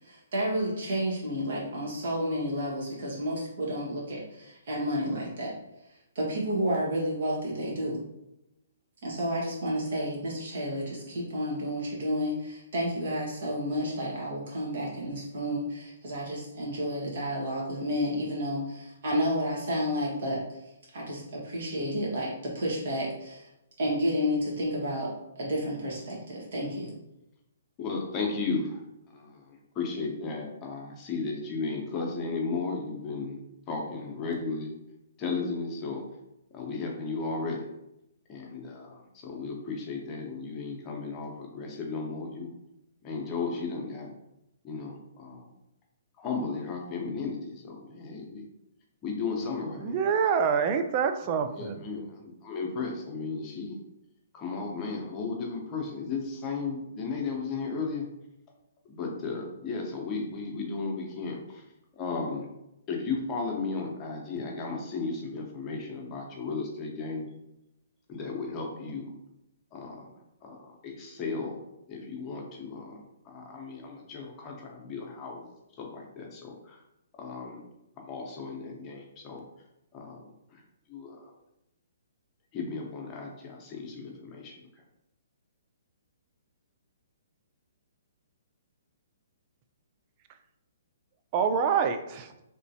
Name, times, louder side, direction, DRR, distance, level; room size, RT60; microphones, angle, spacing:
voice 1, 0.0-5.5 6.1-8.0 9.0-20.6 20.9-23.5 23.8-26.9, equal, 65° right, -4 dB, 1.5 m, -31 dB
voice 2, 27.8-33.4 33.7-34.8 35.2-36.1 36.5-37.7 38.3-42.5 43.0-44.1 44.6-45.5 46.2-48.5 49.0-50.1 51.4-53.8 54.3-58.1 58.9-61.7 61.9-62.5 62.9-67.3 68.1-69.1 69.7-76.8 77.1-77.6 78.0-79.4 79.9-80.6 80.9-81.3 82.5-84.8, left 4 dB, 25° left, 0 dB, 0.8 m, -35 dB
voice 3, 49.8-51.8 91.3-92.3, right 6 dB, 35° right, 8 dB, 0.3 m, -26 dB
3.2 x 3.0 x 2.7 m, 0.88 s
hypercardioid pair, 135°, 0 cm